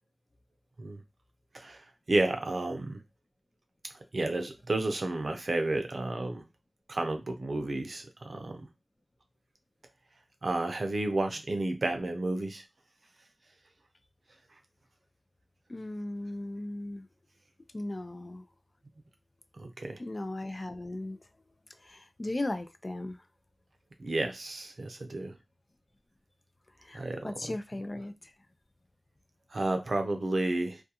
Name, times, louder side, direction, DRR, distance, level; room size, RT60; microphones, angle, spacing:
voice 1, 1.5-3.0 4.1-6.4 6.9-8.7 10.4-12.6 19.6-20.0 24.0-25.3 26.9-27.3 29.5-30.8, right 2 dB, 70° right, 0.5 m, -31 dB
voice 2, 15.7-17.1 17.7-18.5 20.0-21.2 21.8-23.2 26.8-28.3, left 1 dB, 45° left, 0.4 m, -37 dB
2.3 x 2.3 x 2.8 m
cardioid pair, 40°, 0 cm